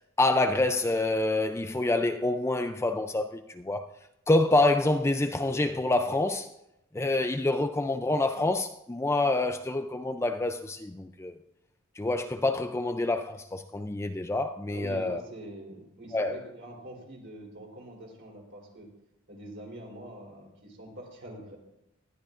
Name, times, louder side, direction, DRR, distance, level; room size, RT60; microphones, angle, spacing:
voice 1, 0.2-3.9 4.3-6.5 6.9-11.4 12.0-15.2 16.1-16.4, left 2 dB, 10° left, 0.4 m, -27 dB
voice 2, 14.7-18.9 19.3-21.6, right 1 dB, 55° right, 3.5 m, -44 dB
19.0 x 12.5 x 2.5 m
head